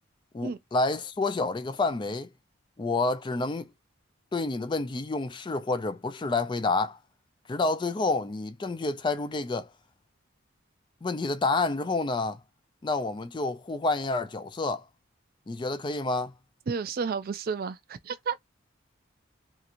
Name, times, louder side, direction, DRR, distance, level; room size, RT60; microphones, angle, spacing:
voice 1, 0.3-2.3 2.8-3.7 4.3-7.0 7.5-9.7 11.0-12.4 12.8-14.8 15.5-16.3, left 3 dB, 25° left, 0.4 m, -29 dB
voice 2, 16.7-18.4, right 5 dB, 50° right, 0.4 m, -32 dB
2.9 x 2.5 x 2.5 m
head